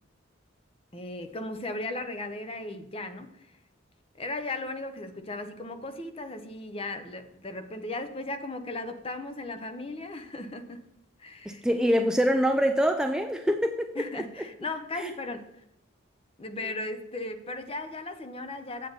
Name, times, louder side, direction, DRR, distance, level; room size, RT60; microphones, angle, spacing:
voice 1, 0.9-3.3 4.2-10.8 11.2-11.7 14.0-15.5 16.4-18.9, left 2 dB, 30° left, 9 dB, 0.7 m, -36 dB
voice 2, 11.5-14.5 14.9-15.1 16.6-16.7, equal, 5° right, 6 dB, 0.4 m, -25 dB
7.9 x 7.5 x 4.0 m, 0.81 s
head